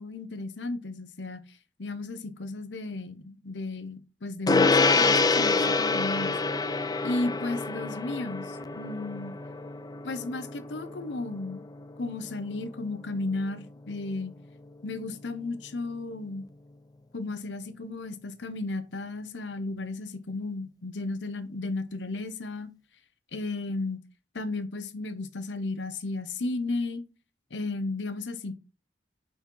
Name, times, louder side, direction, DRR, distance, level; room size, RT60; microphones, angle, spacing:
voice 1, 0.0-1.4 1.8-6.4 7.0-9.3 10.0-11.7 12.0-14.3 14.8-16.4 17.1-22.7 23.3-24.0 24.3-27.0 27.5-28.5, left 2 dB, 90° left, 0.9 m, -34 dB
Gong, 4.5-14.2, left 3 dB, 20° left, 0.5 m, -27 dB
5.8 x 4.3 x 4.6 m
head